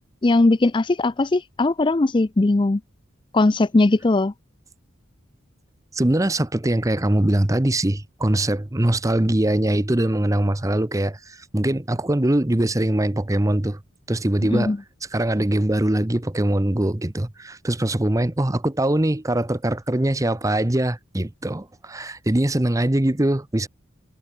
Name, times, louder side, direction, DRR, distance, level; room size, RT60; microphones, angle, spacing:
voice 1, 0.2-2.8 3.3-4.3 14.5-14.8, left 2 dB, 25° left, 0.4 m, -19 dB
voice 2, 5.9-13.8 14.1-14.7 15.1-23.7, right 1 dB, 15° right, 0.8 m, -22 dB
head